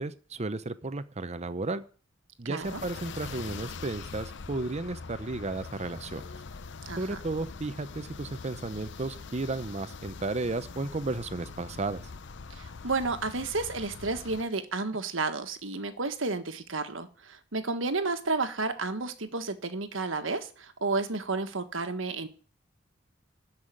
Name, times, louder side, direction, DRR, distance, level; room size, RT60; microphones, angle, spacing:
voice 1, 0.0-1.8 2.4-6.2 7.0-12.0, right 2 dB, 35° right, 12 dB, 0.7 m, -33 dB
voice 2, 2.4-2.8 6.8-7.2 12.5-22.3, right 3 dB, 75° right, 9 dB, 1.5 m, -32 dB
sound 1, 2.6-14.4, left 4 dB, 65° left, 0.7 m, -43 dB
13.0 x 5.7 x 9.2 m, 0.39 s
head